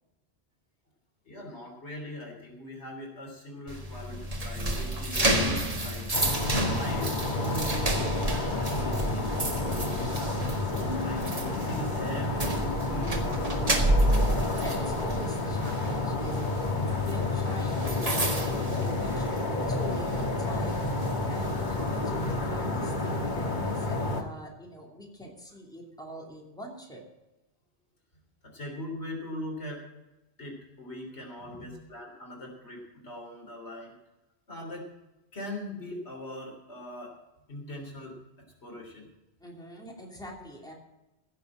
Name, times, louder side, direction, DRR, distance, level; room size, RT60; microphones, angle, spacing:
voice 1, 1.2-6.1 6.6-13.8 28.4-29.8 30.4-33.9 34.5-34.9 35.3-37.2 37.5-38.2 38.6-39.1, equal, 85° left, 0 dB, 3.8 m, -40 dB
sound 1, 3.7-19.6 19.9-20.2 20.7-22.3, right 1 dB, 35° right, 1.8 m, -31 dB
sound 2, 6.1-24.2, left 2 dB, 45° left, 1.7 m, -30 dB
voice 2, 14.1-16.7 17.0-27.0 31.4-31.7 39.4-40.7, equal, 5° left, -1 dB, 2.9 m, -43 dB
16.0 x 6.8 x 7.5 m, 0.98 s
omnidirectional pair, 1.1 m